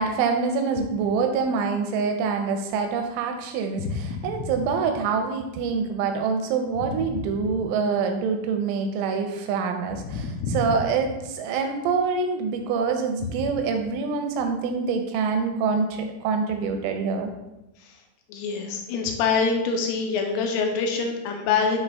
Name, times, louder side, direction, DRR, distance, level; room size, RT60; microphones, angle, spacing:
voice 1, 0.0-17.3, right 5 dB, 85° right, 4 dB, 2.8 m, -25 dB
voice 2, 10.1-10.6 18.3-21.8, left 5 dB, 85° left, 2 dB, 3.1 m, -25 dB
11.5 x 3.9 x 2.2 m, 0.96 s
omnidirectional pair, 5.8 m